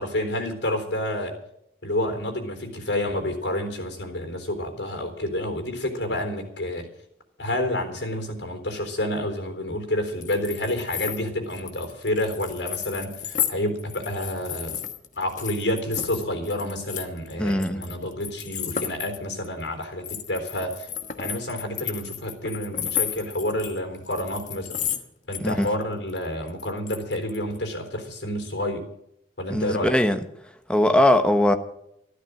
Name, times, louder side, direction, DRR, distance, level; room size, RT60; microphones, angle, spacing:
voice 1, 0.0-1.4 1.8-6.9 7.4-14.8 15.2-20.9 21.2-24.8 25.3-28.9 29.4-30.0, left 1 dB, 80° left, 3.8 m, -29 dB
sound 1, 10.2-13.5 13.8-25.0 25.3-25.8 26.1-27.6, left 9 dB, 45° left, 1.2 m, -33 dB
voice 2, 17.4-17.9 25.4-25.7 29.5-30.2 30.7-31.5, left 1 dB, 5° left, 1.1 m, -20 dB
13.5 x 12.5 x 6.4 m
head